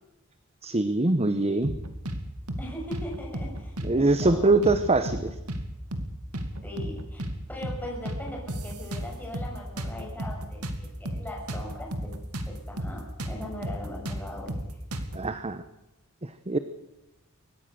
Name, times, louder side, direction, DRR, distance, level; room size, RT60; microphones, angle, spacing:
voice 1, 0.6-1.7 3.8-5.4 15.1-15.6 16.5-16.6, right 2 dB, 30° right, 11 dB, 0.9 m, -23 dB
sound 1, 1.6-2.2 2.5-2.6 2.9-3.9 4.2-4.4 4.6-5.6 5.9-6.1 6.3-7.4 7.6-7.8 8.1-9.5 9.8-12.5 12.8-12.9 13.2-15.2, right 1 dB, 90° right, 2.4 m, -33 dB
voice 2, 2.6-4.6 6.6-12.1 12.5-14.5, left 1 dB, 10° left, -3 dB, 6.4 m, -40 dB
23.5 x 19.0 x 6.8 m, 0.93 s
head